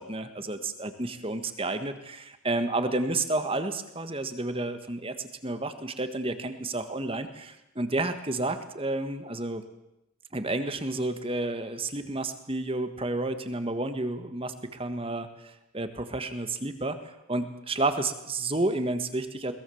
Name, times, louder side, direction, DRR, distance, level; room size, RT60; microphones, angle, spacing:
voice 1, 0.0-9.6 10.3-19.5, right 2 dB, 25° right, 9 dB, 1.5 m, -31 dB
22.0 x 20.0 x 7.1 m, 0.87 s
head